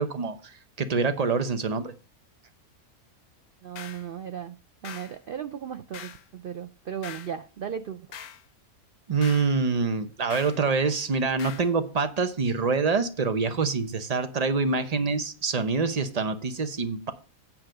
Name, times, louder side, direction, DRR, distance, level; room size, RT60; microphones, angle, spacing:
voice 1, 0.0-1.9 9.1-17.1, right 4 dB, 35° right, 10 dB, 0.8 m, -26 dB
voice 2, 3.6-4.6 4.8-8.0, right 8 dB, 80° right, 9 dB, 0.4 m, -36 dB
sound 1, 3.8-4.1 4.8-5.2 5.9-6.3 7.0-7.4 8.1-8.4 9.2-9.5 10.3-10.6 11.4-11.7, left 8 dB, 85° left, 1.3 m, -42 dB
8.8 x 5.1 x 6.3 m, 0.35 s
omnidirectional pair, 1.5 m